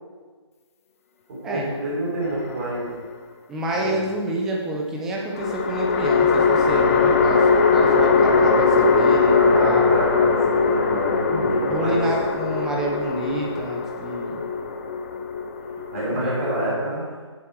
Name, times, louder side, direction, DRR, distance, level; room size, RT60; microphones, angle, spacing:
voice 1, 1.3-2.9 3.7-4.0 9.3-12.0 15.9-17.0, right 1 dB, 30° right, -6 dB, 4.3 m, -27 dB
sound 1, 2.2-3.1 5.3-16.7, left 4 dB, 30° left, 0.8 m, -20 dB
voice 2, 3.5-9.9 11.3-14.4 16.0-16.4, right 1 dB, 5° right, -1 dB, 0.4 m, -28 dB
16.5 x 7.4 x 4.5 m, 1.4 s
hypercardioid pair, 165°, 16 cm